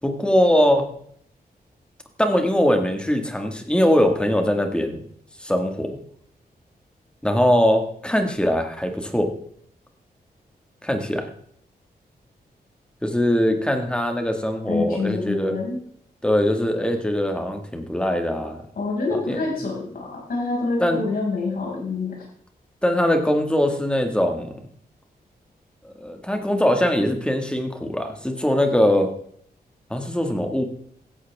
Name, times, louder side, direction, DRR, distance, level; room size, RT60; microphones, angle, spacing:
voice 1, 0.0-0.9 2.2-5.0 5.4-6.0 7.2-9.3 10.8-11.2 13.0-15.6 16.2-18.6 19.3-19.4 20.8-21.0 22.8-24.6 25.8-29.1 29.9-30.6, left 1 dB, 5° left, 4 dB, 1.9 m, -21 dB
voice 2, 14.7-15.8 18.7-22.3, left 3 dB, 65° left, -3 dB, 6.1 m, -26 dB
16.0 x 13.5 x 3.6 m, 0.63 s
wide cardioid pair, 155°, 16 cm